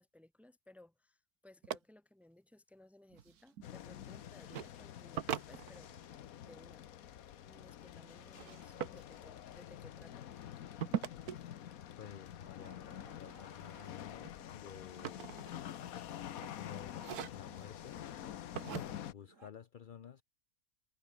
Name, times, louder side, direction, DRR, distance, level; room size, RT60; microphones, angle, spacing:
voice 1, 0.0-6.9 7.3-10.3, left 1 dB, ahead, 2.2 m, -61 dB
sound 1, 1.6-1.8 3.1-3.7 4.5-4.7 5.1-6.2 8.3-9.0 10.8-11.4 13.3-13.6 14.0-15.9 16.3-16.6 17.0-17.6 18.5-18.8, right 9 dB, 80° right, 1.6 m, -41 dB
sound 2, 3.6-19.1, left 10 dB, 70° left, 1.3 m, -48 dB
voice 2, 12.0-15.4 16.5-17.1 17.3-18.0 18.6-20.2, left 8 dB, 50° left, 0.6 m, -52 dB
Growling, 12.5-14.6 15.2-17.0 17.2-19.5, right 5 dB, 55° right, 2.5 m, -65 dB
omnidirectional pair, 1.6 m